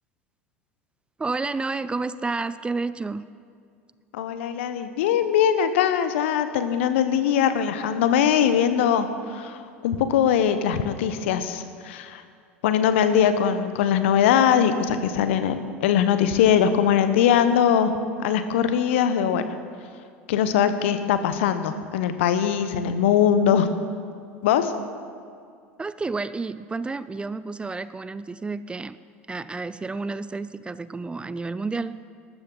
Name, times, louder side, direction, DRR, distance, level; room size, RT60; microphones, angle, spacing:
voice 1, 1.2-3.3 25.8-29.0 29.3-32.0, right 3 dB, 15° right, 15 dB, 0.4 m, -30 dB
voice 2, 4.1-12.2 12.6-17.9 18.2-19.4 20.3-23.8 24.4-24.7, left 8 dB, 65° left, 10 dB, 1.0 m, -21 dB
19.5 x 13.5 x 3.9 m, 2.3 s
figure-of-eight pair, 75°, 7 cm